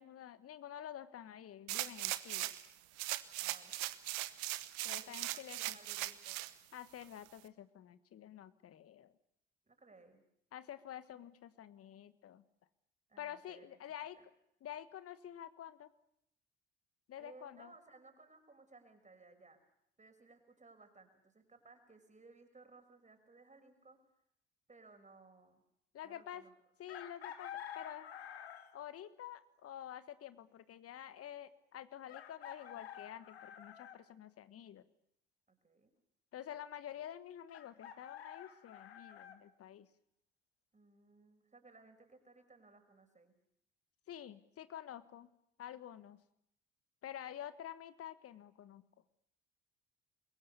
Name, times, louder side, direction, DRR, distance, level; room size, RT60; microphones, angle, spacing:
voice 1, 0.0-2.6 4.8-5.8 6.7-9.1 10.5-12.4 13.2-14.2 14.6-15.9 17.1-17.7 25.9-26.4 26.8-28.1 28.7-34.8 36.3-39.9 44.1-45.3 45.6-46.2 47.0-48.8, left 10 dB, 50° left, 14 dB, 1.4 m, -49 dB
sound 1, 1.7-2.7 3.0-6.5 7.0-7.1, right 19 dB, 65° right, 1.2 m, -39 dB
voice 2, 3.4-3.8 5.0-6.4 9.7-10.2 13.1-13.8 14.2-14.3 17.2-19.6 20.0-24.0 24.7-25.6 26.0-26.5 35.5-35.9 40.7-43.3, right 3 dB, 25° right, 6 dB, 6.0 m, -61 dB
Chicken rooster, 26.9-28.8 30.5-30.6 32.1-34.0 37.5-39.4, left 9 dB, 80° left, 1.6 m, -49 dB
28.5 x 22.5 x 6.9 m, 0.74 s
figure-of-eight pair, 50°, 31 cm